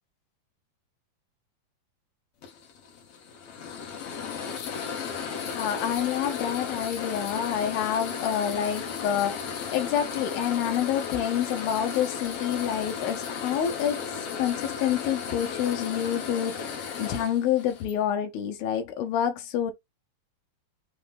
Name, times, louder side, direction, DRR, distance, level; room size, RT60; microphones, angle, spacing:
sound 1, 2.4-17.9, left 6 dB, 70° left, 1.4 m, -35 dB
voice 1, 5.5-19.7, left 9 dB, 90° left, 2.5 m, -28 dB
5.7 x 2.1 x 3.4 m
omnidirectional pair, 4.1 m